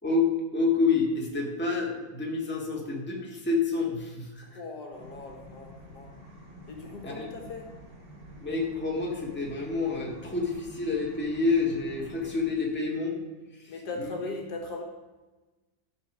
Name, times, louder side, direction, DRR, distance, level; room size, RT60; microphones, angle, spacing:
voice 1, 0.0-4.6 7.0-7.3 8.4-13.2 13.5-14.1, left 4 dB, 5° left, -2 dB, 1.5 m, -28 dB
voice 2, 4.4-6.1 6.7-7.7 13.7-14.8, left 3 dB, 65° left, 2 dB, 1.8 m, -39 dB
sound 1, 4.9-12.5, equal, 35° right, 1.6 m, -48 dB
11.5 x 4.6 x 6.1 m, 1.2 s
omnidirectional pair, 2.0 m